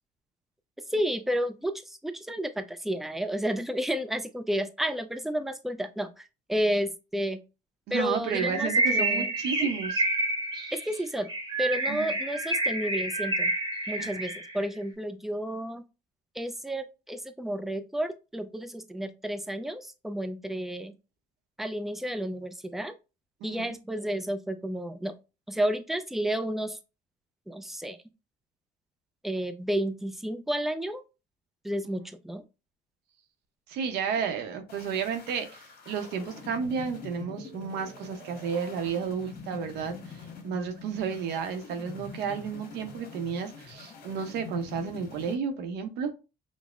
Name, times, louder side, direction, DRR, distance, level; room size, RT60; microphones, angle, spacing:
voice 1, 0.9-7.4 7.9-9.3 9.6-9.7 10.7-11.3 11.6-13.5 13.9-15.8 16.4-20.9 21.6-22.9 23.4-25.1 25.5-26.8 27.5-28.0 29.2-31.0 31.6-32.4, equal, ahead, 0.3 m, -31 dB
voice 2, 7.9-10.0 11.9-12.2 14.1-14.2 23.4-23.7 33.7-40.0 40.4-46.1, right 6 dB, 80° right, 0.7 m, -32 dB
Bird, 8.3-14.6, right 2 dB, 25° right, 0.9 m, -29 dB
sound 1, 34.7-45.4, left 5 dB, 65° left, 1.2 m, -45 dB
5.1 x 2.0 x 2.4 m
cardioid pair, 110°, 17 cm